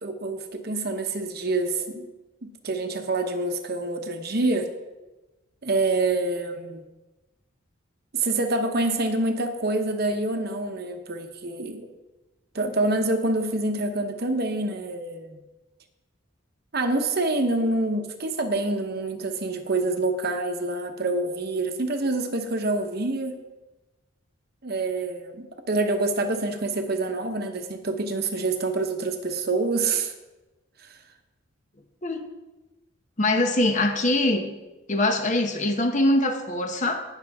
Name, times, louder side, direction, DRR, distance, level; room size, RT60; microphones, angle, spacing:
voice 1, 0.0-2.0 2.4-4.7 5.6-6.8 8.1-11.9 12.5-15.4 16.7-23.3 24.6-30.1, right 2 dB, 45° right, 5 dB, 1.0 m, -26 dB
voice 2, 33.2-34.5 34.9-37.0, left 1 dB, 35° left, 5 dB, 0.9 m, -23 dB
19.0 x 6.6 x 3.6 m, 1.1 s
head